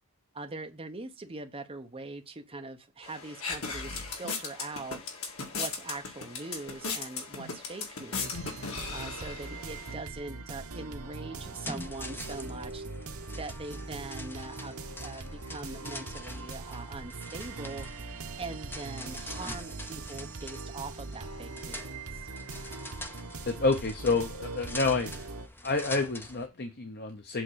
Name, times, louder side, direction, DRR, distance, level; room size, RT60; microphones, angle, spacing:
voice 1, 0.3-5.0 5.5-8.4 8.9-12.8 13.3-17.9 18.4-22.3, right 3 dB, 25° right, 1.0 m, -42 dB
sound 1, 3.0-9.9, left 4 dB, 70° left, 2.1 m, -37 dB
sound 2, 8.1-25.5, right 3 dB, 75° right, 1.0 m, -41 dB
sound 3, 11.4-26.5, left 1 dB, 10° left, 0.8 m, -45 dB
voice 2, 23.5-25.3 25.6-27.4, left 3 dB, 50° left, 0.9 m, -29 dB
7.9 x 3.7 x 6.3 m
head